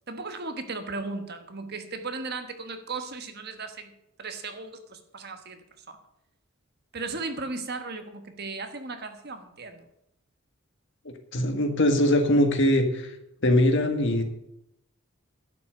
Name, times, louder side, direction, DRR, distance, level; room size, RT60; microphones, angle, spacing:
voice 1, 0.1-6.0 6.9-9.8, right 3 dB, 50° right, 8 dB, 1.3 m, -36 dB
voice 2, 11.3-13.1 13.4-14.2, left 1 dB, 60° left, 6 dB, 1.7 m, -22 dB
11.5 x 6.0 x 9.0 m, 0.81 s
head